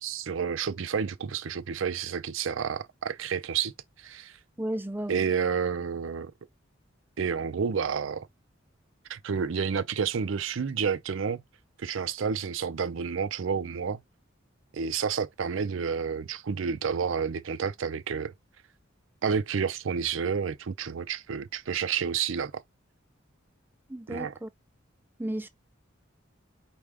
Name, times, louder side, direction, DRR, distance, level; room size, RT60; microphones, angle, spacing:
voice 1, 0.0-3.7 4.0-4.3 5.1-6.3 7.2-8.3 9.1-11.4 11.8-14.0 14.7-18.3 19.2-22.6 24.1-24.3, right 6 dB, 75° right, 0.5 m, -30 dB
voice 2, 4.6-5.3 23.9-24.5 25.2-25.5, right 1 dB, 10° right, 0.5 m, -34 dB
4.8 x 2.4 x 3.4 m
head